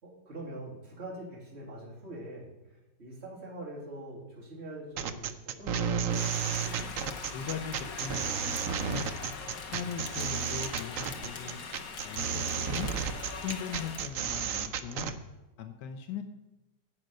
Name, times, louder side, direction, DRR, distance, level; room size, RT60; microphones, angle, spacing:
voice 1, 0.0-2.5 3.0-6.3, right 1 dB, 35° right, -5 dB, 2.9 m, -44 dB
sound 1, 5.0-15.1, right 7 dB, 65° right, 0.9 m, -32 dB
Rain, 6.1-14.1, left 5 dB, 55° left, 1.4 m, -41 dB
voice 2, 7.3-9.1 9.7-11.6 12.0-12.9 13.4-15.2 15.6-16.2, left 7 dB, 75° left, 5 dB, 1.3 m, -39 dB
10.5 x 5.0 x 7.7 m, 1.0 s
omnidirectional pair, 1.9 m